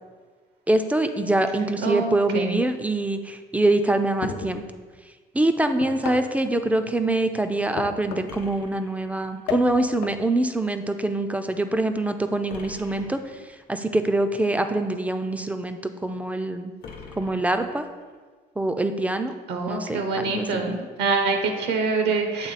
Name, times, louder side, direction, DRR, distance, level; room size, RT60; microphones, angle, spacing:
voice 1, 0.7-4.6 5.3-13.4 13.7-16.7 17.2-17.9 18.6-19.4 19.7-20.8, right 2 dB, 10° right, 8 dB, 0.3 m, -24 dB
voice 2, 1.8-2.6 19.5-22.5, right 4 dB, 80° right, 4 dB, 0.8 m, -25 dB
sound 1, 4.2-4.7 5.8-6.4 7.8-8.4 9.5-10.2, left 9 dB, 80° left, 0.4 m, -33 dB
sound 2, 8.3-9.7 12.5-13.6 16.8-18.1, left 4 dB, 60° left, 0.8 m, -44 dB
7.5 x 3.1 x 4.1 m, 1.5 s
cardioid pair, 110°, 17 cm